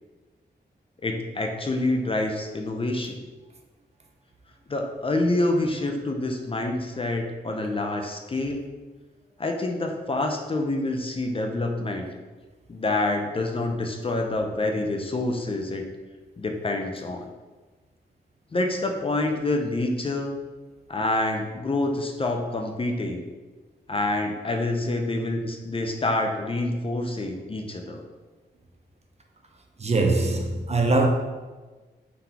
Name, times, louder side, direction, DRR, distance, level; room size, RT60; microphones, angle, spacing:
voice 1, 1.0-3.1 4.7-8.7 9.4-12.1 12.7-15.8 16.4-17.2 18.5-20.3 20.9-23.2 23.9-28.0, left 2 dB, 30° left, 0.5 m, -27 dB
voice 2, 29.8-31.1, right 2 dB, 35° right, 0.5 m, -22 dB
3.8 x 3.6 x 2.8 m
cardioid pair, 80°, 18 cm